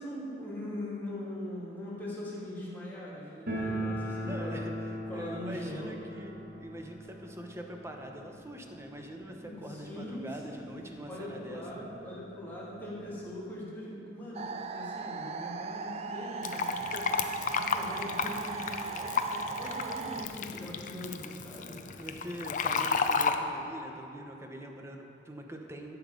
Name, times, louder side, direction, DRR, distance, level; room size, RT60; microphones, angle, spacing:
voice 1, 0.0-4.5 5.1-5.9 9.4-17.2 17.4-21.8, left 1 dB, 10° left, -8 dB, 2.6 m, -41 dB
sound 1, 3.5-10.2 10.4-10.5 10.8-10.9 11.6-11.7 12.0-13.2, right 1 dB, 60° right, 1.7 m, -39 dB
voice 2, 4.2-4.7 5.1-11.9 21.9-26.0, right 1 dB, 15° right, 2 dB, 0.9 m, -43 dB
sound 2, 14.3-20.3, right 5 dB, 35° right, 0.4 m, -38 dB
Fill (with liquid), 16.4-23.4, left 5 dB, 45° left, 0.5 m, -32 dB
11.5 x 7.1 x 5.2 m, 3.0 s
head